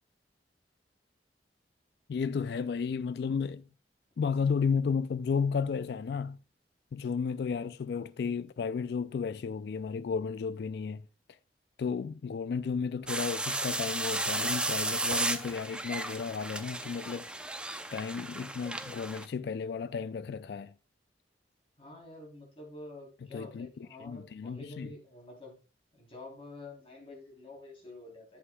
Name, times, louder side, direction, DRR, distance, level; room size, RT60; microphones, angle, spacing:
voice 1, 2.1-3.6 4.2-6.4 6.9-11.0 11.8-17.3 17.9-20.7 23.3-23.7 24.0-24.9, left 5 dB, 65° left, 0.3 m, -33 dB
sound 1, 13.1-19.3, right 2 dB, 5° right, 0.5 m, -34 dB
voice 2, 21.8-25.5 25.9-28.4, left 2 dB, 35° left, 3.3 m, -48 dB
11.0 x 7.8 x 2.3 m
head